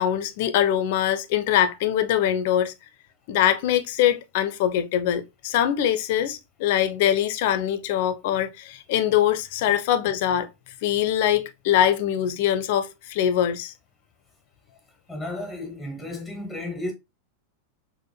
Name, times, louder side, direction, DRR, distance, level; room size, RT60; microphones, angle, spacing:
voice 1, 0.0-2.7 3.3-10.5 10.8-13.7, left 10 dB, 50° left, 0.4 m, -23 dB
voice 2, 15.1-16.9, left 1 dB, 5° right, 0.8 m, -33 dB
4.2 x 2.1 x 2.7 m
figure-of-eight pair, 90°, 0 cm